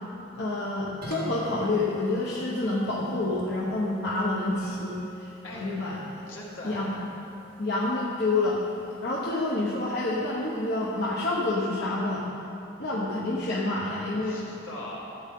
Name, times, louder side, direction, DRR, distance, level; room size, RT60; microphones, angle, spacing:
voice 1, 0.4-6.2 6.6-6.9 7.6-8.6 9.0-12.3 12.8-14.4, left 2 dB, 55° left, -6 dB, 1.1 m, -28 dB
sound 1, 1.0-11.5, right 1 dB, 45° right, 2.2 m, -47 dB
voice 2, 5.4-5.7 6.3-7.0 14.2-15.2, left 1 dB, 75° left, -4 dB, 2.1 m, -41 dB
14.0 x 8.0 x 3.8 m, 2.7 s
head